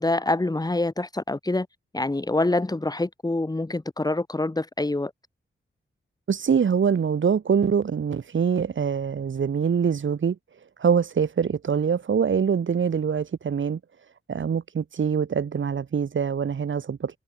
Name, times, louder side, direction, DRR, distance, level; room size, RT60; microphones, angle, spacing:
voice 1, 0.0-1.7 1.9-5.1, left 2 dB, 20° left, 6.6 m, -26 dB
voice 2, 6.3-10.4 10.8-13.8 14.3-17.2, right 6 dB, 70° right, 5.0 m, -24 dB
wide cardioid pair, 135°, 21 cm